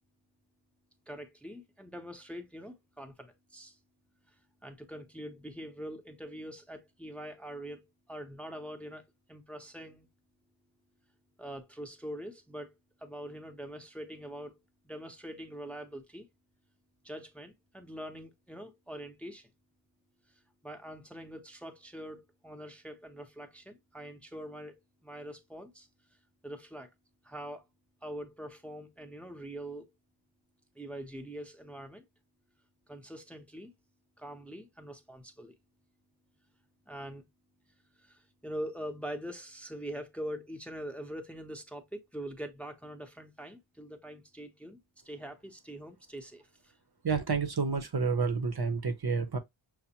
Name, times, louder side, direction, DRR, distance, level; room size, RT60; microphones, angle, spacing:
voice 1, 1.1-3.8 4.6-9.0 9.3-10.1 11.4-12.7 13.0-14.6 14.8-16.3 17.0-19.5 20.6-25.9 26.4-26.9 27.2-27.7 28.0-29.9 30.8-32.0 32.9-33.7 34.2-35.6 36.9-37.2 38.0-44.8 45.0-46.7, equal, 5° left, 0.7 m, -43 dB
voice 2, 47.0-49.4, right 5 dB, 55° right, 0.7 m, -29 dB
5.8 x 2.1 x 2.8 m
wide cardioid pair, 45°, 47 cm